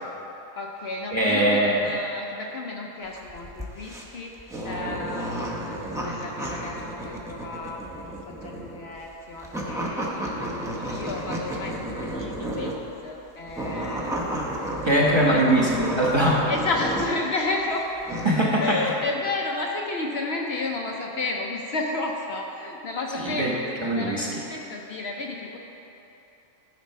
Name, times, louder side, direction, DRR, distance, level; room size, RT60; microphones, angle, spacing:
voice 1, 0.6-14.2 15.0-15.4 16.5-17.9 18.6-25.6, left 3 dB, 60° left, 0 dB, 0.9 m, -32 dB
voice 2, 1.1-1.9 14.3-14.5 14.8-16.4 18.2-18.8 23.2-23.5 23.8-24.3, right 1 dB, 25° right, -4 dB, 1.0 m, -21 dB
sound 1, 3.1-12.9 13.4-17.3 17.7-18.3, right 1 dB, 5° right, 0.7 m, -32 dB
12.0 x 4.4 x 5.5 m, 3.0 s
omnidirectional pair, 1.4 m